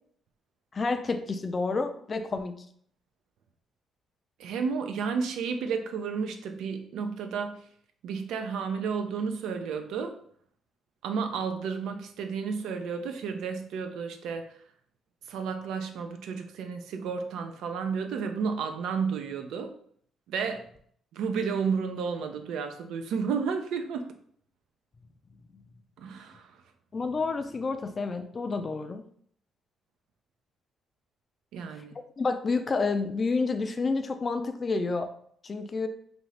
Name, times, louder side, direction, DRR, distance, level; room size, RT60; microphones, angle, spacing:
voice 1, 0.7-2.5 25.5-25.6 26.9-29.0 32.2-35.1 35.4-35.9, left 4 dB, 35° left, 8 dB, 0.3 m, -29 dB
voice 2, 4.4-7.6 8.0-10.1 11.0-14.5 15.3-19.7 20.3-20.7 21.1-24.1 26.0-26.5 31.5-32.0, right 5 dB, 85° right, 6 dB, 0.4 m, -32 dB
2.7 x 2.5 x 3.1 m, 0.62 s
cardioid pair, 90°, 0 cm